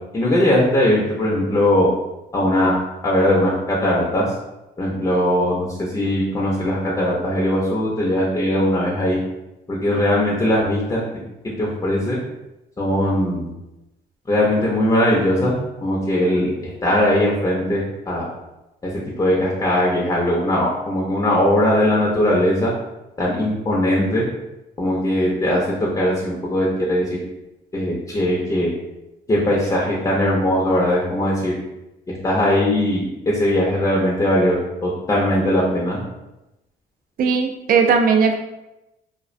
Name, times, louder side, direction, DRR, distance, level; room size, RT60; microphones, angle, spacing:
voice 1, 0.1-1.9 2.3-2.8 3.0-4.3 4.8-5.7 5.9-9.2 9.7-11.0 11.6-12.2 12.8-13.5 14.3-15.5 15.8-16.5 16.8-18.3 18.8-18.9 19.2-22.7 23.2-24.2 24.8-27.0 27.7-28.7 29.3-31.5 32.2-36.0, left 1 dB, 20° left, -4 dB, 0.6 m, -19 dB
voice 2, 37.2-38.3, right 5 dB, 50° right, 4 dB, 0.4 m, -17 dB
2.3 x 2.1 x 2.5 m, 0.95 s
supercardioid pair, 75°, 18 cm